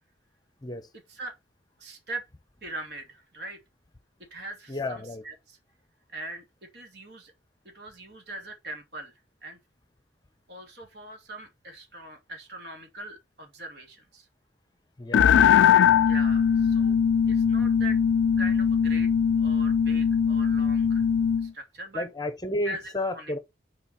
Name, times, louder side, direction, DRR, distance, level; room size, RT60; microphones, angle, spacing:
voice 1, 1.8-2.3 2.6-3.6 4.3-5.6 6.1-7.3 7.6-9.1 9.4-9.6 10.5-14.3 16.1-17.0 17.3-18.0 18.4-19.1 19.4-21.1 21.4-22.0 22.6-23.4, right 2 dB, 60° right, 2.5 m, -41 dB
voice 2, 4.7-5.2 15.0-15.3 15.6-15.8 21.9-23.4, left 1 dB, 20° left, 0.8 m, -32 dB
sound 1, 15.1-21.5, left 7 dB, 80° left, 0.3 m, -21 dB
7.1 x 4.5 x 5.5 m
head